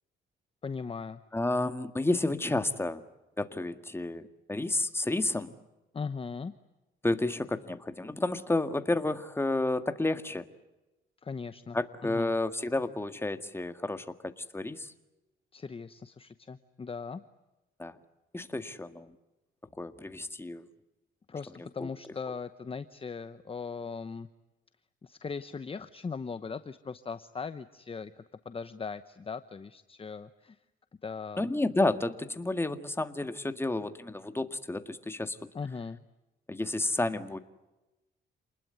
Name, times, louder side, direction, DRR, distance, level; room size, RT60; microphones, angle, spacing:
voice 1, 0.6-1.2 5.9-6.5 11.2-12.3 15.5-17.2 21.3-24.3 25.0-30.6 31.0-31.5 35.5-36.0, left 5 dB, 30° left, 11 dB, 1.0 m, -39 dB
voice 2, 1.3-3.0 3.4-5.5 7.0-10.5 11.7-14.9 17.8-18.0 18.3-19.1 19.8-20.7 21.8-21.9 31.4-35.4 36.5-37.4, left 2 dB, 10° left, 9 dB, 1.8 m, -31 dB
28.5 x 20.5 x 9.6 m, 1.0 s
cardioid pair, 90°, 20 cm